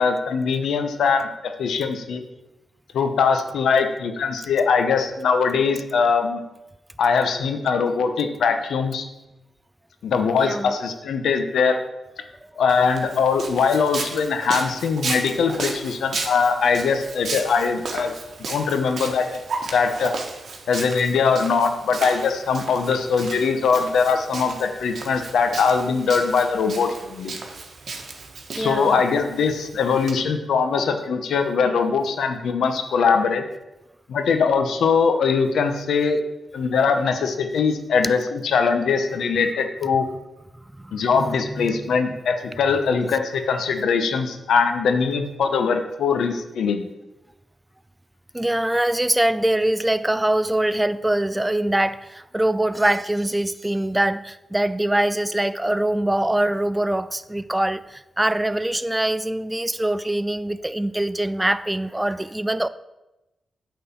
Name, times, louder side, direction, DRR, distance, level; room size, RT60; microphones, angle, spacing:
voice 1, 0.0-2.2 2.9-6.4 7.0-9.1 10.0-11.8 12.6-18.1 18.4-19.4 19.7-20.1 20.7-27.3 28.6-33.4 34.1-36.2 36.5-40.1 40.9-46.9, left 5 dB, 85° left, 7 dB, 0.9 m, -21 dB
voice 2, 10.4-10.8 28.5-29.0 40.8-41.9 48.3-62.7, right 1 dB, 15° right, 15 dB, 0.4 m, -23 dB
Walk footsteps, 12.7-30.1, right 4 dB, 65° right, 1.3 m, -34 dB
8.7 x 3.9 x 6.9 m, 0.98 s
cardioid pair, 70°, 0 cm